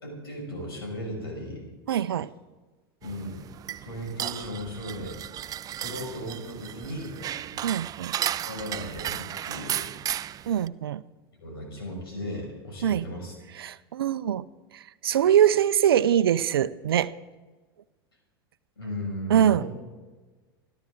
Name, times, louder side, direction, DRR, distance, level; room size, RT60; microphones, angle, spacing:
voice 1, 0.0-1.7 3.0-3.4 3.8-5.2 5.8-7.1 7.5-7.7 8.4-9.9 11.4-13.3 18.8-19.7, equal, 80° left, 0 dB, 6.4 m, -36 dB
voice 2, 1.9-2.3 7.6-8.1 10.5-11.0 12.8-13.1 13.6-14.4 14.7-17.1 19.3-19.6, right 10 dB, 75° right, 16 dB, 0.6 m, -23 dB
sound 1, 3.0-10.7, right 11 dB, 30° right, 0.5 m, -34 dB
28.0 x 12.0 x 3.9 m, 1.3 s
figure-of-eight pair, 85°, 13 cm